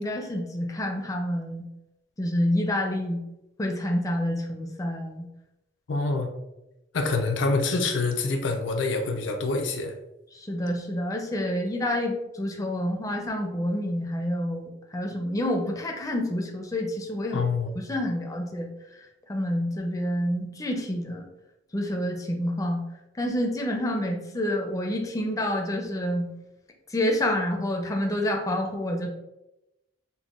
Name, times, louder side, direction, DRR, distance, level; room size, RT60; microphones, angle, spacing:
voice 1, 0.0-1.7 2.2-3.2 3.6-5.3 10.3-17.4 17.7-18.7 19.3-21.3 21.7-22.8 23.2-26.3 26.9-29.1, left 1 dB, 20° left, 1 dB, 0.4 m, -28 dB
voice 2, 5.9-6.3 6.9-9.9 17.3-17.7, left 3 dB, 80° left, 3 dB, 0.5 m, -26 dB
5.4 x 2.1 x 2.4 m, 0.93 s
head